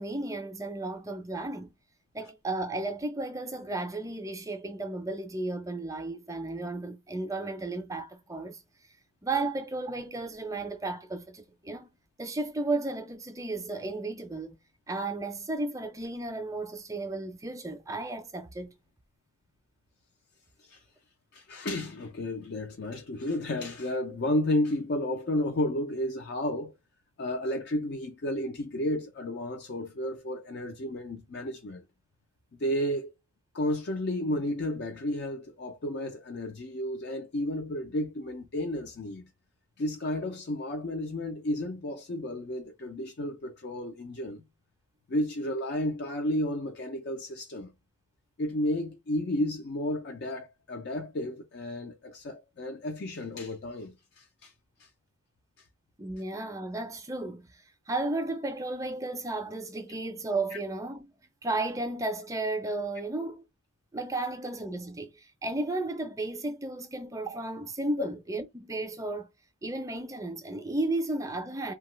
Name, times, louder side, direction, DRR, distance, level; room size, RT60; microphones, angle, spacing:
voice 1, 0.0-1.7 2.1-8.6 9.2-11.9 12.2-14.6 14.9-18.7 56.0-57.5 57.9-61.1 61.4-63.4 63.9-69.3 69.6-71.7, right 2 dB, 15° right, 0.5 m, -34 dB
voice 2, 21.3-26.7 27.2-31.8 32.6-33.1 33.5-39.3 39.8-44.4 45.1-47.7 48.4-54.5 54.8-54.9 60.5-60.6, left 1 dB, 50° left, 0.5 m, -32 dB
2.8 x 2.3 x 3.1 m
head